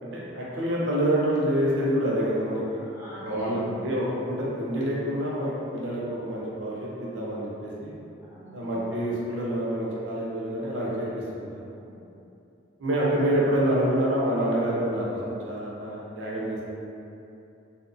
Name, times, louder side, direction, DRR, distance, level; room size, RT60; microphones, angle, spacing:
voice 1, 0.0-2.8 3.2-7.9 8.5-11.6 12.8-16.6, right 1 dB, 80° right, -5 dB, 0.6 m, -27 dB
voice 2, 2.8-3.6 8.3-8.7 11.8-12.1, equal, 10° right, -9 dB, 0.5 m, -44 dB
2.7 x 2.1 x 2.5 m, 2.8 s
head